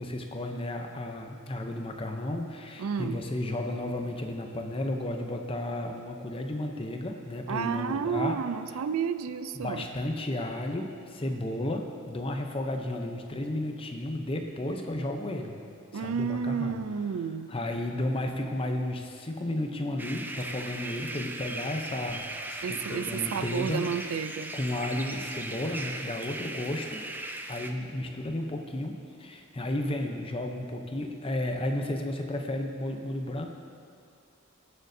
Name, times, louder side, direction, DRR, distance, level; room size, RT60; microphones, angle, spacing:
voice 1, 0.0-8.4 9.5-15.6 15.9-16.8 17.5-23.9 24.5-27.0 27.5-33.5, left 1 dB, 25° left, 3 dB, 0.7 m, -33 dB
voice 2, 2.8-3.2 7.5-9.9 15.9-17.5 22.6-24.5, right 6 dB, 85° right, 12 dB, 0.4 m, -31 dB
sound 1, 20.0-27.7, right 2 dB, 10° right, 0.3 m, -38 dB
17.5 x 6.6 x 2.7 m, 2.4 s
head